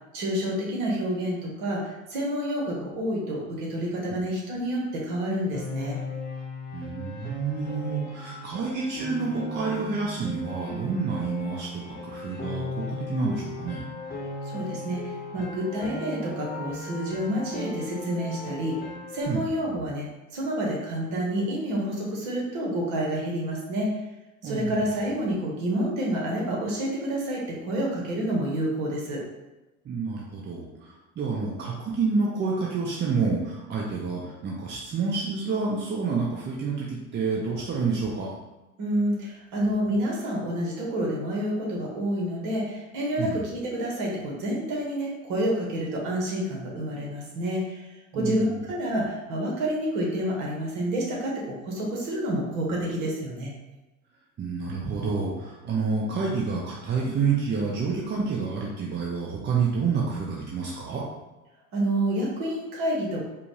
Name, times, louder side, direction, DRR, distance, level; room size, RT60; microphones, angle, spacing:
voice 1, 0.1-6.0 14.5-18.8 19.1-20.1 20.3-23.9 24.4-29.2 38.8-47.8 48.1-51.3 51.6-53.5 61.7-63.2, equal, 55° right, -3 dB, 1.5 m, -28 dB
Piano, 5.5-19.2, left 2 dB, 25° left, 1.0 m, -37 dB
voice 2, 6.7-12.6 13.1-13.8 19.3-19.5 24.4-24.8 29.8-30.6 31.2-38.3 43.2-43.4 48.1-48.6 54.4-61.0, right 4 dB, 25° right, -3 dB, 0.8 m, -28 dB
4.8 x 2.4 x 3.3 m, 1.0 s
figure-of-eight pair, 70°, 40 cm